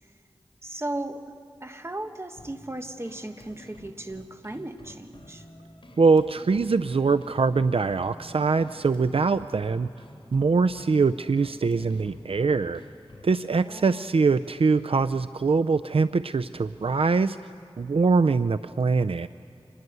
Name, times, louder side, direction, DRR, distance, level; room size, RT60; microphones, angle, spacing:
voice 1, 0.6-1.3 1.6-5.4 13.6-14.1, right 1 dB, 25° right, 6 dB, 1.5 m, -36 dB
sound 1, 2.4-13.4, left 1 dB, 60° left, 3.5 m, -50 dB
voice 2, 6.0-9.9 10.3-12.8 13.2-17.4 17.8-19.3, right 4 dB, 70° right, 11 dB, 0.5 m, -23 dB
26.0 x 20.5 x 8.0 m, 2.7 s
wide cardioid pair, 60°, 10 cm